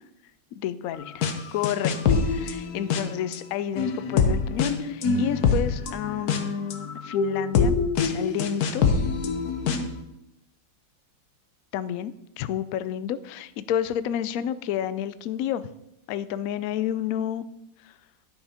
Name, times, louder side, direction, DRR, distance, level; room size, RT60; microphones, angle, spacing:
voice 1, 0.5-1.3 1.5-7.7 8.0-8.8 11.7-15.7 16.1-17.4 17.8-18.0, left 10 dB, 90° left, 14 dB, 0.7 m, -30 dB
sound 1, 1.2-1.3 1.6-3.4 3.8-10.0, left 5 dB, 60° left, 1.3 m, -24 dB
10.5 x 6.2 x 4.9 m, 0.86 s
omnidirectional pair, 2.0 m